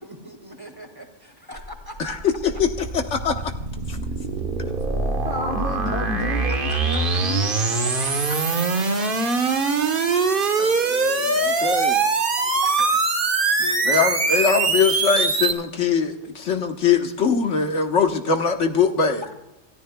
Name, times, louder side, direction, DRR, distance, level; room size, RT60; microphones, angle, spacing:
voice 1, 0.0-2.2 6.5-7.3 7.6-8.4 12.4-13.0 13.6-14.1 19.2-19.3, left 1 dB, 20° right, 4 dB, 2.2 m, -40 dB
sound 1, 1.6-15.5, right 4 dB, 50° right, 1.4 m, -23 dB
voice 2, 2.0-3.5 3.9-4.0 10.6-12.0 13.9-19.2, left 5 dB, 80° left, 5 dB, 1.5 m, -22 dB
voice 3, 5.2-7.5, left 2 dB, 20° left, 1 dB, 1.2 m, -30 dB
27.5 x 14.0 x 2.3 m, 0.91 s
omnidirectional pair, 1.2 m